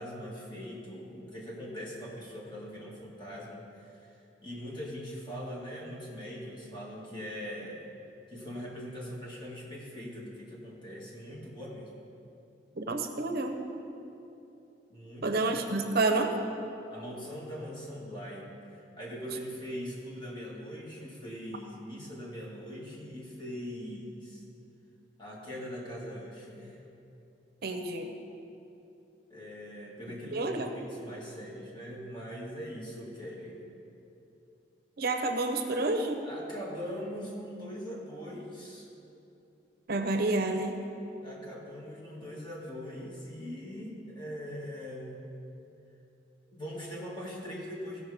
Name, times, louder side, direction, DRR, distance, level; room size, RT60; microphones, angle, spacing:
voice 1, 0.0-7.9 8.3-11.9 14.9-15.4 16.9-24.4 25.2-26.8 29.3-33.6 36.2-38.9 41.2-45.2 46.5-48.0, equal, 25° left, -4 dB, 2.0 m, -41 dB
voice 2, 12.8-13.6 15.2-16.3 27.6-28.1 30.3-30.7 35.0-36.2 39.9-40.8, right 2 dB, 60° right, 5 dB, 0.7 m, -29 dB
15.5 x 5.6 x 5.0 m, 2.8 s
head